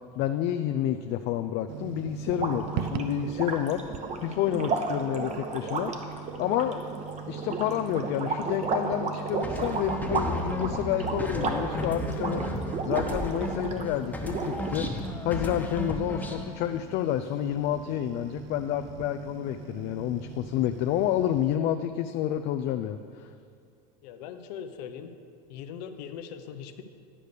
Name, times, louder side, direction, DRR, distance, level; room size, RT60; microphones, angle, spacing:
voice 1, 0.2-3.8 4.2-5.9 6.4-6.8 7.3-14.9 15.2-23.3, left 11 dB, 50° left, 8 dB, 0.4 m, -29 dB
sound 1, 1.7-21.6, right 7 dB, 60° right, 0.5 m, -41 dB
sound 2, 2.3-13.9 14.2-15.1, right 4 dB, 35° right, 1.0 m, -33 dB
sound 3, 9.4-13.8 14.1-16.5, equal, 10° left, 1.1 m, -33 dB
voice 2, 24.0-25.1 25.5-26.8, left 8 dB, 75° left, 8 dB, 0.8 m, -40 dB
9.9 x 5.0 x 6.7 m, 2.3 s
hypercardioid pair, 95°, 21 cm